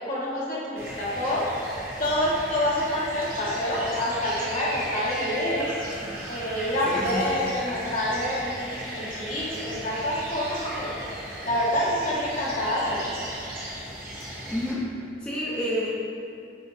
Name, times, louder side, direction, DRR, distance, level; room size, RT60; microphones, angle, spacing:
voice 1, 0.0-1.5 2.0-5.7 6.3-10.9 11.4-13.1, left 1 dB, 45° left, -6 dB, 1.5 m, -27 dB
sound 1, 0.8-14.7, equal, 50° right, 1.4 m, -36 dB
voice 2, 6.9-7.2 14.5-14.9 15.2-15.9, equal, 5° left, -8 dB, 0.8 m, -28 dB
7.7 x 4.4 x 4.1 m, 2.5 s
head